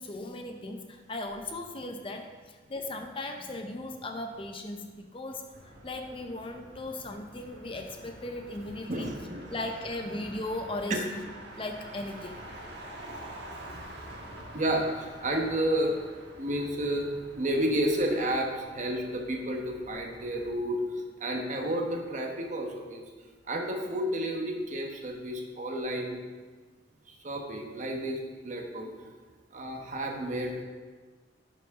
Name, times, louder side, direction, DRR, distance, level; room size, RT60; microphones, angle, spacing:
voice 1, 0.0-5.4 5.8-9.1 9.5-11.0 11.6-12.5, left 2 dB, 30° left, 5 dB, 0.6 m, -37 dB
Motor vehicle (road), 5.5-20.5, right 1 dB, 60° right, 1.3 m, -48 dB
voice 2, 8.9-9.6 10.9-11.0 13.1-16.0 16.3-23.0 23.5-26.2 27.1-28.9 29.5-30.6, right 1 dB, 40° right, 2 dB, 1.1 m, -31 dB
11.0 x 6.1 x 3.6 m, 1.4 s
head